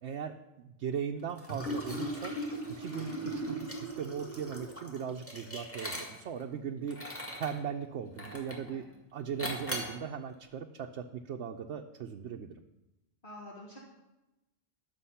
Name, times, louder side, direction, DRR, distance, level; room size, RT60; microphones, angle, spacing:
voice 1, 0.0-2.3 2.8-3.1 3.5-7.0 7.4-8.8 9.1-12.5, right 7 dB, 80° right, 3 dB, 1.0 m, -38 dB
Liquid, 1.4-6.4 6.9-7.6 8.2-8.7 9.4-10.0, equal, 10° left, 1.9 m, -38 dB
voice 2, 13.2-13.8, left 1 dB, 50° left, -3 dB, 1.8 m, -48 dB
11.5 x 7.1 x 5.6 m, 0.98 s
omnidirectional pair, 1.1 m